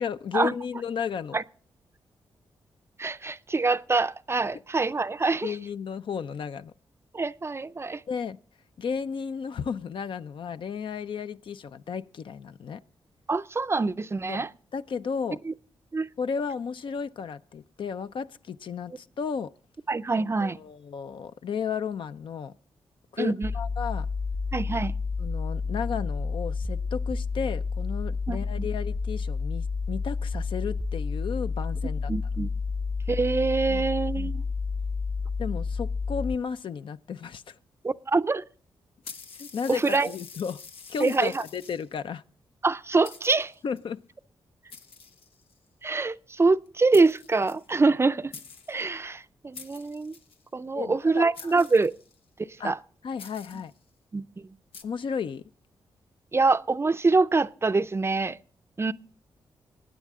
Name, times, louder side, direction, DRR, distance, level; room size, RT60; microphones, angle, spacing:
voice 1, 0.0-1.4 5.4-6.7 8.1-8.4 8.8-12.8 14.3-14.4 14.7-15.4 16.2-19.5 20.2-22.5 23.1-24.1 25.2-32.1 33.7-33.9 35.4-37.6 39.4-40.6 40.9-42.2 43.6-44.0 50.8-51.2 52.6-52.7 53.0-53.7 54.8-55.4, left 6 dB, 65° left, 0.5 m, -33 dB
voice 2, 3.0-5.5 7.1-8.0 13.3-14.5 15.5-15.6 15.9-16.1 19.9-20.6 23.2-23.5 24.5-24.9 28.3-28.7 32.1-32.5 33.1-34.4 37.8-38.4 39.7-40.1 41.0-41.4 42.6-43.5 45.8-48.3 48.7-50.1 50.5-51.9 52.6-52.8 54.1-54.3 56.3-58.4 58.8-58.9, right 3 dB, 30° right, 0.5 m, -25 dB
sound 1, 23.4-36.4, left 4 dB, 35° left, 1.1 m, -30 dB
sound 2, 39.0-42.0 42.7-42.8 43.0-43.8 44.7-45.7 46.7-46.8 46.9-48.0 48.3-48.8 49.5-50.4 51.3-52.2 53.2-53.8 54.7-54.8, left 5 dB, 90° left, 1.0 m, -46 dB
20.5 x 9.2 x 3.6 m
cardioid pair, 70°, 9 cm